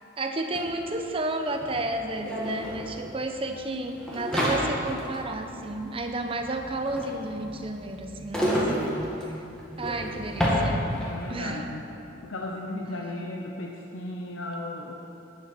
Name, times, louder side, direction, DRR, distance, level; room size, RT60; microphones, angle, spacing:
voice 1, 0.2-8.7 9.2-9.4 9.8-10.8 11.3-11.7 12.9-13.0, right 2 dB, 30° right, 5 dB, 0.8 m, -32 dB
sound 1, 0.6-0.7 0.8-11.3, equal, 5° left, 1.8 m, -30 dB
voice 2, 11.0-11.9 12.2-14.9, left 1 dB, 85° left, 0 dB, 0.8 m, -35 dB
12.5 x 9.8 x 4.4 m, 3.0 s
head